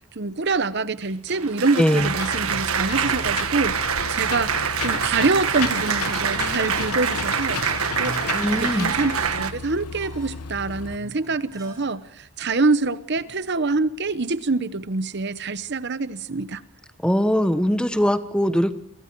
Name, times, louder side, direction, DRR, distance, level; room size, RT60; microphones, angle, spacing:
voice 1, 0.2-3.7 4.1-7.6 8.0-8.2 8.5-16.6, right 3 dB, 50° right, 0.9 m, -25 dB
Applause, 1.0-9.5, right 7 dB, 75° right, 1.7 m, -25 dB
voice 2, 1.8-2.1 8.3-8.9 17.0-18.7, equal, 5° left, 1.0 m, -21 dB
Engine / Mechanisms, 2.0-11.0, left 5 dB, 90° left, 1.1 m, -33 dB
sound 1, 9.9-12.0 12.3-12.4 13.2-13.7, equal, 15° right, 6.1 m, -45 dB
29.0 x 24.0 x 4.6 m
head